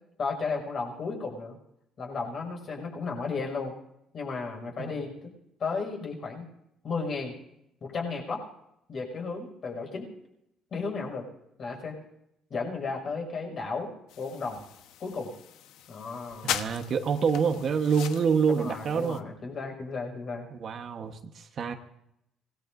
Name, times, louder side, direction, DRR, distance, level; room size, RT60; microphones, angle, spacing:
voice 1, 0.2-1.6 2.0-3.7 4.1-5.1 5.6-6.5 6.8-7.4 7.8-8.4 8.9-10.1 10.7-11.3 11.6-12.0 12.5-13.9 14.2-14.6 15.0-15.3 15.9-16.7 18.5-20.4, left 4 dB, 40° left, 1 dB, 6.0 m, -34 dB
sound 1, 14.1-19.2, left 10 dB, 85° left, 1.1 m, -39 dB
voice 2, 16.4-19.2 20.5-21.7, right 6 dB, 40° right, 6 dB, 1.2 m, -27 dB
25.5 x 19.5 x 2.7 m, 0.80 s
cardioid pair, 155°, 0 cm